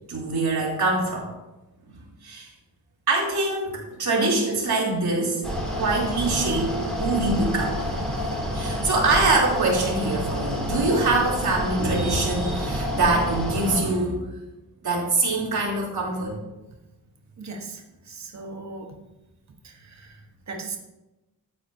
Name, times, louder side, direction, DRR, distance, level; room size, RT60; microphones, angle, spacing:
voice 1, 0.1-1.3 2.2-2.5 3.1-5.4 5.7-8.0 8.5-14.2 14.8-16.4, right 2 dB, 75° right, -4 dB, 3.4 m, -24 dB
Mechanical fan, 5.4-13.8, equal, ahead, 2.7 m, -28 dB
voice 2, 17.4-19.0 19.6-20.8, right 3 dB, 45° right, 2 dB, 1.3 m, -38 dB
13.0 x 8.5 x 2.8 m, 1.0 s
wide cardioid pair, 140°, 38 cm